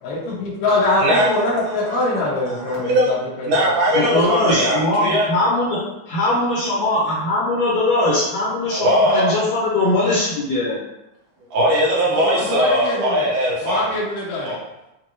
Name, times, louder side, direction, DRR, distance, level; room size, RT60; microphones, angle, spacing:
voice 1, 0.0-3.5 12.2-13.3 13.6-14.6, left 2 dB, 90° left, -7 dB, 2.6 m, -23 dB
voice 2, 1.0-2.0 2.4-3.1 3.4-5.3 8.7-9.4 11.5-13.9 14.4-14.6, equal, 80° right, -5 dB, 2.6 m, -20 dB
voice 3, 3.9-5.8 6.1-10.8, left 2 dB, 65° left, -7 dB, 1.9 m, -20 dB
6.4 x 2.5 x 3.0 m, 0.91 s
omnidirectional pair, 3.7 m